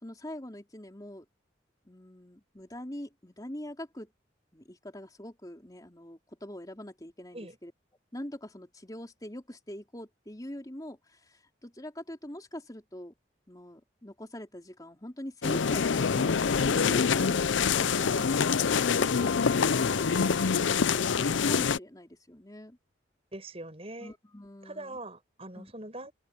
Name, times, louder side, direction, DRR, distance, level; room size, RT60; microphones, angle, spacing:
voice 1, 0.0-1.3 1.9-4.1 4.5-7.7 8.1-13.1 13.5-16.4 16.7-17.4 17.8-18.7 19.0-22.8 24.0-25.0 25.5-25.7, left 1 dB, 20° left, 3.9 m, -43 dB
sound 1, 15.4-21.8, left 6 dB, 85° left, 0.6 m, -25 dB
voice 2, 23.3-24.1 24.6-26.1, right 2 dB, 35° right, 6.7 m, -42 dB
open air
head